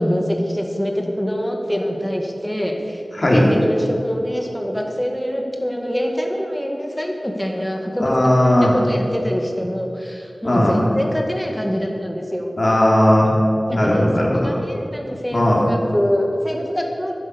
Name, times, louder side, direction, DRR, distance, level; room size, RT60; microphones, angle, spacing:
voice 1, 0.0-3.0 3.3-8.3 8.8-12.5 13.7-14.1 14.3-17.1, equal, 5° left, 1 dB, 1.9 m, -24 dB
voice 2, 3.1-3.5 8.0-8.8 10.4-10.8 12.6-13.3 13.7-14.5 15.3-15.6, left 1 dB, 45° left, -4 dB, 3.7 m, -16 dB
11.0 x 10.5 x 7.1 m, 2.6 s
wide cardioid pair, 55°, 0 cm